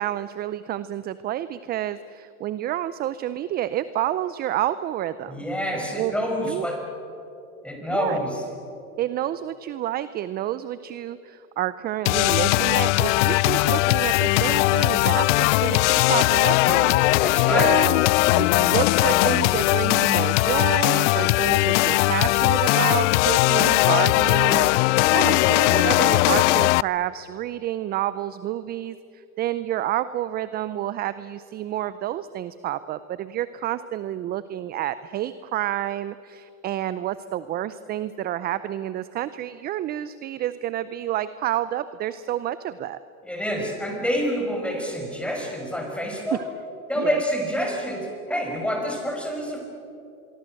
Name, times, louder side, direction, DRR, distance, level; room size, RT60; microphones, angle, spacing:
voice 1, 0.0-5.5 6.0-6.1 6.4-6.7 7.9-8.2 9.0-17.2 17.5-18.0 18.3-43.0 47.0-47.2, right 13 dB, 25° right, 15 dB, 0.5 m, -29 dB
voice 2, 5.3-6.8 7.6-8.4 17.2-17.7 43.2-46.4 46.9-49.6, equal, 5° left, 1 dB, 5.8 m, -27 dB
sound 1, 12.1-26.8, left 20 dB, 60° left, 0.5 m, -19 dB
sound 2, 17.7-25.9, right 4 dB, 70° right, 7.8 m, -48 dB
25.5 x 23.5 x 7.7 m, 2.8 s
hypercardioid pair, 120°, 43 cm